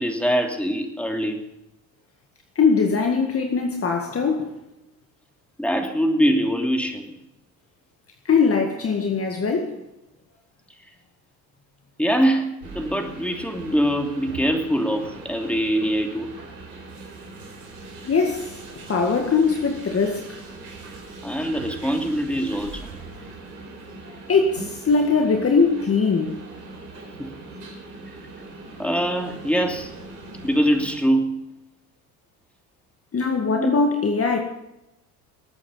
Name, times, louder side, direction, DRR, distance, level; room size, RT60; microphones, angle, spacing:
voice 1, 0.0-1.4 5.6-7.2 12.0-16.3 21.2-22.9 27.2-27.3 28.8-29.9 30.4-31.4 33.5-33.7, equal, 5° left, 2.8 m, -23 dB
voice 2, 2.6-4.6 8.3-9.8 18.0-18.5 18.9-20.3 24.1-26.4 33.1-34.4, left 4 dB, 30° left, 2.0 m, -21 dB
sound 1, 12.6-31.0, right 3 dB, 90° right, 4.8 m, -40 dB
20.5 x 9.0 x 5.6 m
hypercardioid pair, 70°, 44 cm